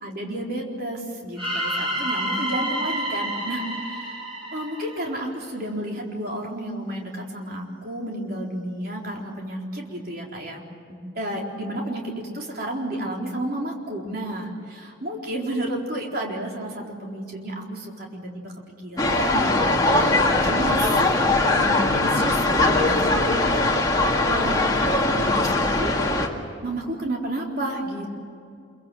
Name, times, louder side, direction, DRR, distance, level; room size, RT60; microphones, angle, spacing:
voice 1, 0.0-4.2 4.5-10.6 10.9-18.5 18.8-23.8 24.2-24.6 24.9-26.1 26.6-28.2, right 1 dB, 50° right, -1 dB, 4.1 m, -31 dB
sound 1, 1.4-5.4, right 1 dB, 25° right, 6.1 m, -29 dB
sound 2, 19.0-26.3, left 2 dB, 20° left, 2.0 m, -21 dB
27.0 x 23.5 x 7.7 m, 2.4 s
head